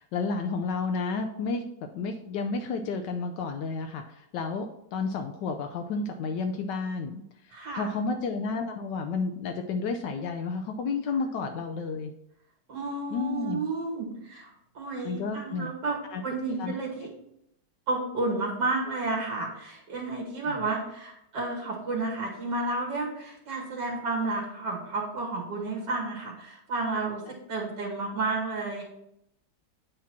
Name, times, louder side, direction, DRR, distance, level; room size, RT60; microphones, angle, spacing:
voice 1, 0.0-1.6 1.9-12.1 13.1-13.6 15.0-15.7 16.1-16.2 16.6-16.7 20.6-20.7, left 4 dB, 75° left, 5 dB, 1.2 m, -31 dB
voice 2, 7.5-7.9 12.7-16.0 16.2-17.1 17.9-28.8, right 3 dB, 65° right, -2 dB, 2.1 m, -31 dB
8.4 x 2.9 x 5.9 m, 0.81 s
omnidirectional pair, 2.0 m